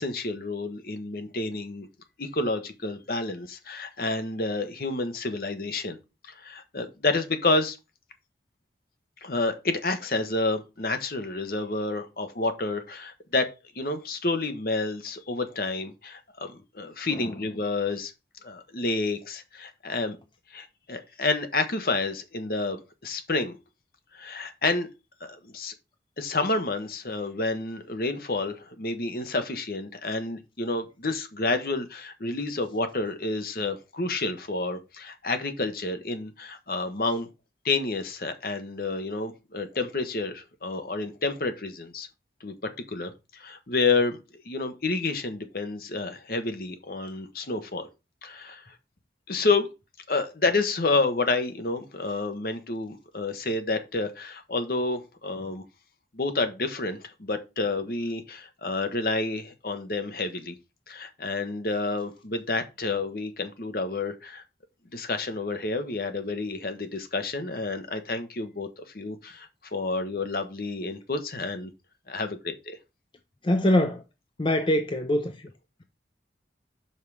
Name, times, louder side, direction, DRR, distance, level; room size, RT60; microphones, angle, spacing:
voice 1, 0.0-1.9 2.2-6.0 6.3-7.8 9.2-13.5 13.7-18.1 18.4-20.2 20.5-23.6 24.1-24.9 25.2-25.7 26.2-37.3 37.6-42.1 42.4-42.5 42.9-44.2 44.4-47.9 48.2-48.6 49.3-49.7 50.1-55.6 56.1-60.6 60.9-64.4 64.9-71.7 72.1-72.5, left 3 dB, 55° left, 1.1 m, -29 dB
voice 2, 73.4-74.0 74.4-75.5, left 1 dB, 30° left, 0.6 m, -24 dB
5.7 x 5.5 x 4.8 m
head